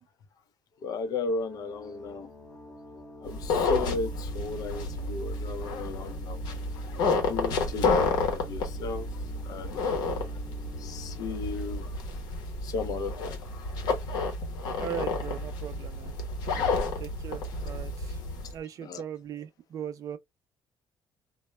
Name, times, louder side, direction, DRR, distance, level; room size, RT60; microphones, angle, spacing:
voice 1, 0.8-2.3 3.2-6.4 7.3-9.1 9.4-10.1 10.8-11.9 12.6-13.6 18.8-19.0, left 3 dB, 60° left, 0.5 m, -35 dB
sound 1, 1.3-12.8, left 1 dB, 35° left, 0.9 m, -50 dB
sound 2, 3.3-18.5, left 3 dB, 85° left, 0.9 m, -30 dB
voice 2, 14.8-16.2 16.5-18.2 18.5-20.2, right 9 dB, 55° right, 0.4 m, -39 dB
2.1 x 2.0 x 3.1 m
cardioid pair, 105°, 7 cm